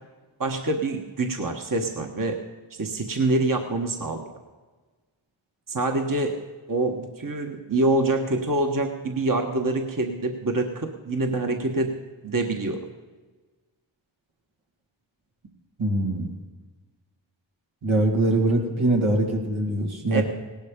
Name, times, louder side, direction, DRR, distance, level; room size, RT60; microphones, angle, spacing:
voice 1, 0.4-2.4 2.7-4.2 5.7-6.3 6.7-12.0 12.2-12.9 20.1-20.2, right 2 dB, 45° right, 4 dB, 1.3 m, -25 dB
voice 2, 15.8-16.3 17.8-20.2, right 1 dB, 85° right, 1 dB, 2.5 m, -23 dB
17.5 x 12.0 x 5.2 m, 1.3 s
wide cardioid pair, 65°, 46 cm